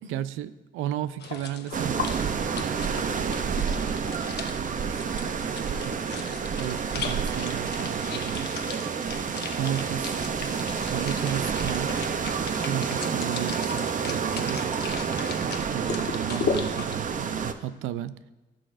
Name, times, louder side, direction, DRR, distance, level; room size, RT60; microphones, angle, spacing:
voice 1, 0.1-2.4 5.8-5.9 6.6-8.5 9.6-10.2 10.9-12.0 12.5-14.7 15.7-18.2, right 11 dB, 90° right, 15 dB, 0.4 m, -33 dB
sound 1, 1.2-17.0, left 5 dB, 55° left, 0.9 m, -37 dB
sound 2, 1.7-17.5, right 6 dB, 40° right, 0.6 m, -29 dB
voice 2, 3.2-5.4 9.5-9.7, right 4 dB, 70° right, 5 dB, 1.2 m, -45 dB
15.0 x 6.3 x 2.5 m, 1.2 s
cardioid pair, 90°, 20 cm